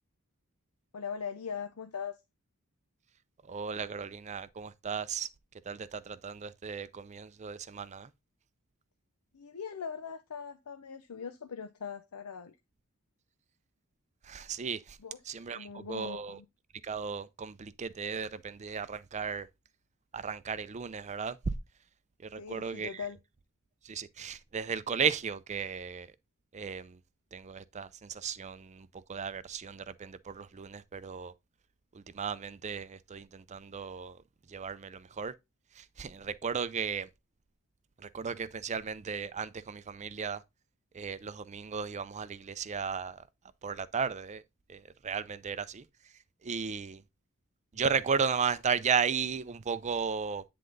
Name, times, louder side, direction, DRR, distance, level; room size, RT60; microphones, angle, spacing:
voice 1, 0.9-2.2 9.3-12.6 15.0-15.2 15.5-16.4 22.4-23.2, left 6 dB, 90° left, 0.6 m, -40 dB
voice 2, 3.4-5.3 5.6-8.1 14.2-15.0 15.2-16.4 16.8-19.5 20.1-21.5 22.2-23.1 23.8-26.1 26.5-27.0 27.3-31.3 31.9-34.2 34.5-35.3 35.7-37.1 38.0-40.4 40.9-43.2 43.6-44.4 44.7-45.9 46.4-47.0 47.7-50.4, right 6 dB, 30° right, 0.5 m, -35 dB
9.6 x 3.8 x 3.9 m
head